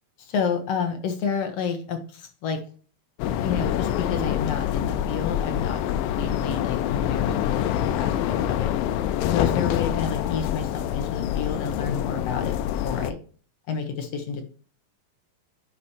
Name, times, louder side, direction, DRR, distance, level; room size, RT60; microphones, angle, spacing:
voice 1, 0.2-2.6 3.4-8.7 9.3-12.6 12.8-13.2 13.7-14.4, left 6 dB, 65° left, 5 dB, 1.6 m, -30 dB
sound 1, 3.2-13.1, left 11 dB, 85° left, 2.3 m, -26 dB
9.8 x 6.2 x 2.8 m, 0.41 s
omnidirectional pair, 4.1 m